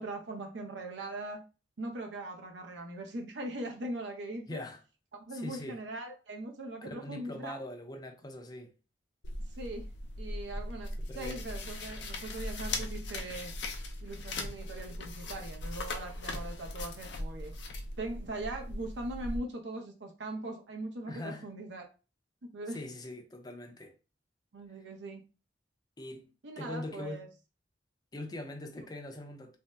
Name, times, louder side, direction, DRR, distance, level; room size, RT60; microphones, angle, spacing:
voice 1, 0.0-1.4 1.8-4.6 5.3-7.6 9.6-9.9 10.2-10.9 11.1-13.5 14.0-17.5 18.0-21.8 22.5-22.8 24.5-25.2 26.4-27.3, right 2 dB, 80° right, 0.7 m, -40 dB
voice 2, 4.5-4.8 5.3-5.8 6.8-8.7 11.0-11.4 21.1-21.5 22.7-23.9 26.0-27.3 28.1-29.6, left 1 dB, 20° left, 0.5 m, -42 dB
sound 1, 9.2-19.4, left 2 dB, 75° left, 0.5 m, -39 dB
2.6 x 2.0 x 3.3 m
head